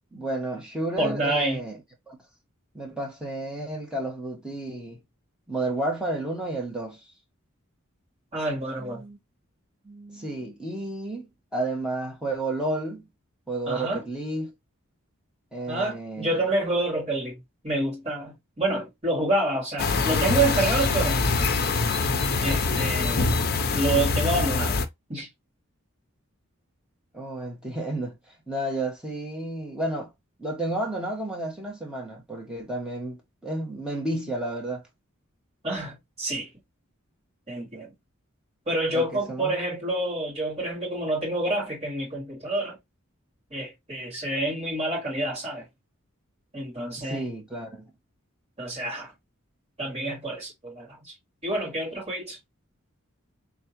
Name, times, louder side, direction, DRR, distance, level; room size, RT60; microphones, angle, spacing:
voice 1, 0.1-2.2 2.7-5.0 5.5-7.0 8.8-9.2 9.8-13.1 13.5-14.5 15.5-16.5 27.1-28.1 28.5-30.1 30.4-34.8 38.9-39.5 47.0-47.9, right 1 dB, 5° right, 1.2 m, -31 dB
voice 2, 1.0-1.6 8.3-9.0 13.7-14.0 15.7-21.2 22.4-23.4 23.7-24.7 25.1-25.3 35.6-36.5 37.5-37.9 38.7-42.8 43.5-45.7 46.5-47.2 48.6-49.1 49.8-51.1 51.4-52.4, right 2 dB, 30° right, 3.0 m, -28 dB
sound 1, 19.8-24.9, left 4 dB, 45° left, 0.5 m, -24 dB
3.7 x 3.3 x 2.8 m
head